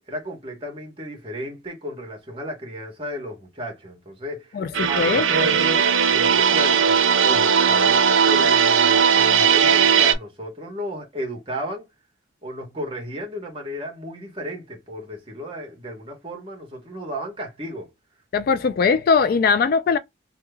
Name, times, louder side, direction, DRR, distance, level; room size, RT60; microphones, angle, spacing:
voice 1, 0.0-11.9 12.4-17.9, equal, 30° right, 1.3 m, -33 dB
voice 2, 4.5-5.5 18.3-20.0, left 5 dB, 50° left, 0.3 m, -20 dB
sound 1, 4.7-10.1, right 7 dB, 85° right, 0.5 m, -18 dB
3.1 x 2.3 x 3.3 m
head